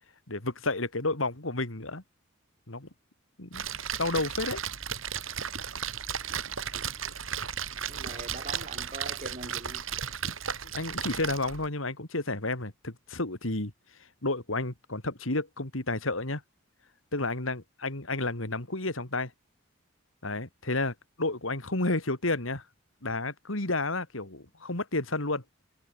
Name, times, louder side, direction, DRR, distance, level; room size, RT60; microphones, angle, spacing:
voice 1, 0.3-2.0 2.7-2.9 3.4-3.7 4.0-4.6 10.6-13.7 14.2-16.4 17.1-19.3 20.2-22.6 23.0-25.4, left 2 dB, 90° left, 3.6 m, -31 dB
Splash splatter, 3.5-11.7, right 7 dB, 90° right, 5.5 m, -35 dB
voice 2, 7.9-9.9, right 2 dB, 40° right, 7.3 m, -42 dB
head